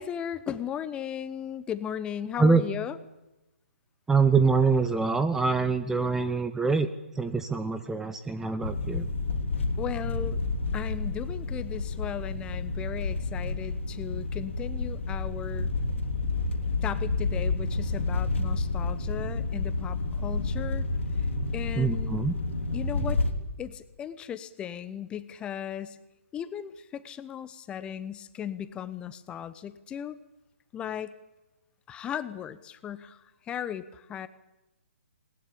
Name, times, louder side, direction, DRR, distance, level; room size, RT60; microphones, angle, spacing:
voice 1, 0.0-3.0 9.8-10.4 10.7-15.7 16.8-20.9 21.2-21.3 21.5-22.2 22.7-23.2 23.6-26.0 26.3-30.2 30.7-31.1 31.9-34.3, left 9 dB, 15° left, 14 dB, 0.9 m, -36 dB
voice 2, 4.1-6.9 7.1-9.1 21.8-22.3, right 4 dB, 5° right, 11 dB, 0.8 m, -24 dB
sound 1, 8.6-23.3, left 3 dB, 65° left, 3.0 m, -30 dB
20.0 x 19.5 x 8.7 m, 0.96 s
figure-of-eight pair, 135°, 7 cm